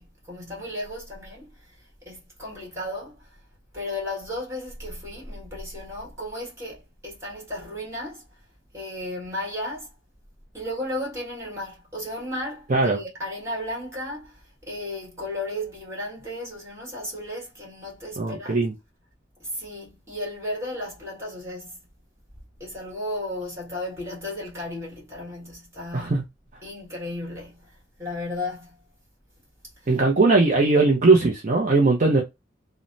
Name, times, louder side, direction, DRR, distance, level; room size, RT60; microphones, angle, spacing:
voice 1, 0.0-3.3 3.7-8.2 8.7-9.9 10.5-18.6 19.4-21.8 22.6-26.2 26.6-28.8 29.8-30.0, left 1 dB, 15° right, 1.6 m, -34 dB
voice 2, 18.2-18.7 25.9-26.2 29.9-32.2, right 3 dB, 45° right, 0.5 m, -19 dB
3.1 x 2.1 x 2.5 m
head